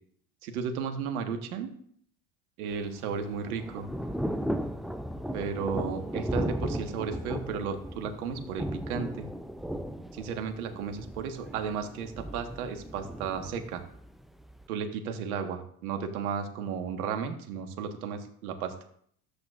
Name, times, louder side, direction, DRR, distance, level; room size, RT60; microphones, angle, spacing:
voice 1, 0.4-1.7 2.6-3.9 5.3-9.3 10.1-13.8 14.7-18.7, right 6 dB, 80° right, 6 dB, 1.5 m, -34 dB
Thunder / Rain, 2.7-14.7, equal, ahead, 0.4 m, -36 dB
14.0 x 8.2 x 2.5 m, 0.63 s
hypercardioid pair, 80°, 43 cm